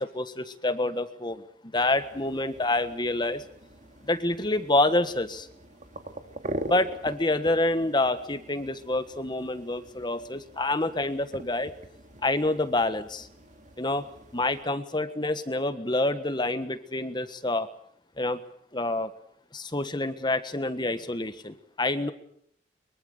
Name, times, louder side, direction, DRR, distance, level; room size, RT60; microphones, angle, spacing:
voice 1, 0.0-1.4 1.7-3.4 4.1-5.5 6.6-11.7 12.2-13.3 13.8-14.0 14.3-17.7 18.2-18.4 18.7-19.1 19.5-22.1, left 2 dB, 25° left, 11 dB, 1.5 m, -27 dB
sound 1, 1.7-14.6, right 1 dB, 40° right, 2.4 m, -43 dB
24.0 x 23.5 x 6.8 m, 0.66 s
head